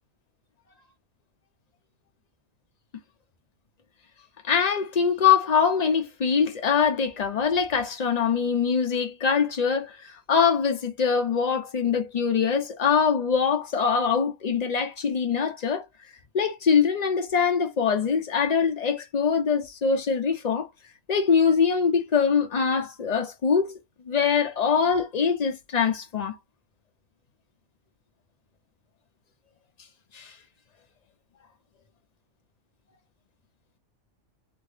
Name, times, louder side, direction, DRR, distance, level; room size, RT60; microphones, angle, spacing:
voice 1, 4.4-15.8 16.3-20.7 21.1-23.8 24.1-26.3 30.1-30.3, left 6 dB, 75° left, 0.3 m, -23 dB
2.8 x 2.7 x 3.2 m
omnidirectional pair, 1.5 m